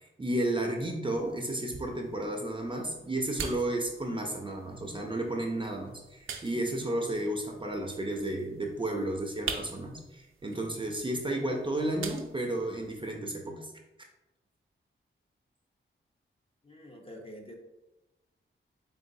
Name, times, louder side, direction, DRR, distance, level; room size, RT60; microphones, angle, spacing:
voice 1, 0.0-13.7 14.0-14.1, right 1 dB, 25° right, 2 dB, 0.5 m, -32 dB
sound 1, 1.1-13.1, right 5 dB, 75° right, 0.5 m, -45 dB
voice 2, 16.6-17.5, equal, 25° left, 1 dB, 0.7 m, -46 dB
3.9 x 3.8 x 2.6 m, 0.97 s
wide cardioid pair, 100°, 21 cm